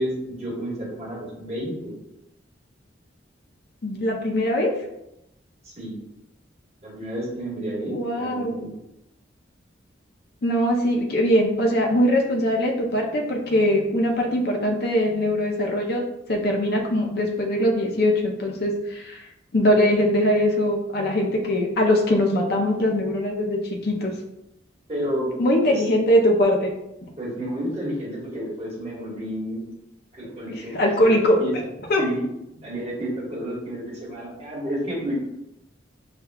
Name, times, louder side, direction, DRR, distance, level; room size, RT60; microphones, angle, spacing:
voice 1, 0.0-2.0 5.6-6.0 6.8-8.7 24.9-25.3 25.7-25.8 27.2-29.6 30.1-31.5 32.0-32.2 32.6-35.1, equal, 35° right, -6 dB, 1.4 m, -31 dB
voice 2, 3.8-4.7 7.9-8.5 10.4-16.0 16.3-24.1 25.4-26.7 30.5-31.6 31.9-32.0, left 1 dB, 55° left, 1 dB, 0.5 m, -21 dB
6.4 x 2.2 x 2.3 m, 0.86 s
head